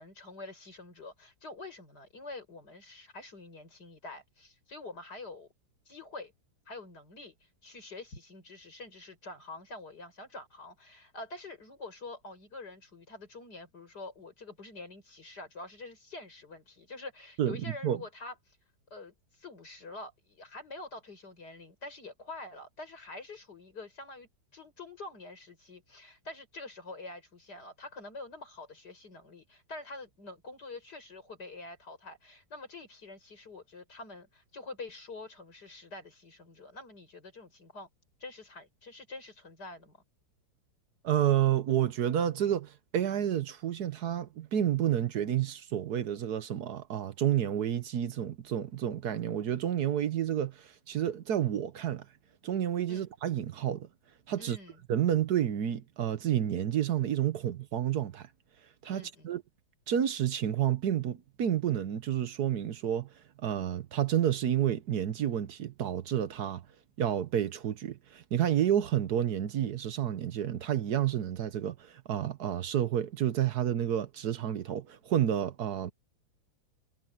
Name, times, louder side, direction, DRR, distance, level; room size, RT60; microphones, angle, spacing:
voice 1, 0.0-5.5 5.9-6.3 6.7-18.6 18.9-37.9 38.2-40.0 52.9-53.1 54.4-54.8 58.9-59.3, left 2 dB, 55° left, 6.9 m, -46 dB
voice 2, 41.0-52.0 52.4-53.9 54.3-54.6 54.9-58.3 58.8-59.4 59.9-63.1 63.4-66.6 67.0-75.9, right 10 dB, 60° right, 1.3 m, -30 dB
omnidirectional pair, 2.1 m